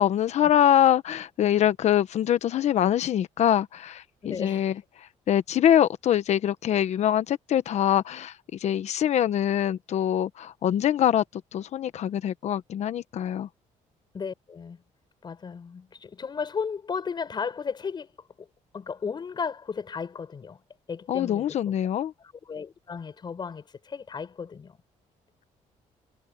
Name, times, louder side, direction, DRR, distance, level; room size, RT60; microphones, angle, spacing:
voice 1, 0.0-4.7 5.0-11.2 11.5-13.5 21.1-22.1, left 10 dB, 55° left, 1.1 m, -24 dB
voice 2, 4.2-4.7 14.1-14.8 15.2-18.1 18.4-18.5 18.7-20.6 20.9-21.7 22.2-24.8, left 6 dB, 35° left, 6.8 m, -34 dB
cardioid pair, 135°, 14 cm